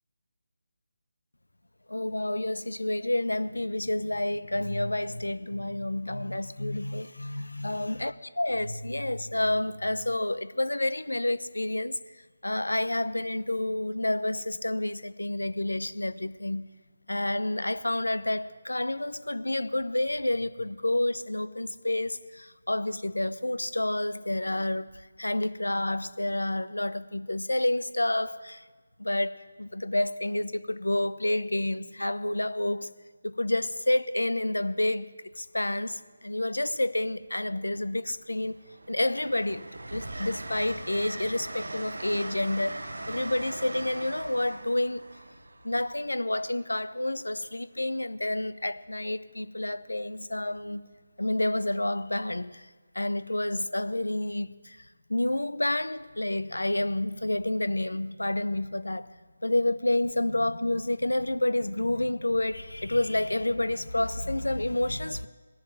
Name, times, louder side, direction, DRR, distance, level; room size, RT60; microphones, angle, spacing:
voice 1, 1.9-12.0 12.4-16.7 17.1-28.6 29.0-32.9 33.2-38.6 38.9-45.0 45.6-50.9 51.2-52.7 52.9-54.8 55.1-59.1 59.4-65.3, left 1 dB, 85° left, 0.8 m, -29 dB
Train, 35.3-35.6 36.9-37.6 38.1-46.8 48.4-48.7, right 2 dB, 75° right, 1.1 m, -41 dB
19.5 x 7.3 x 8.8 m
figure-of-eight pair, 155°, 0 cm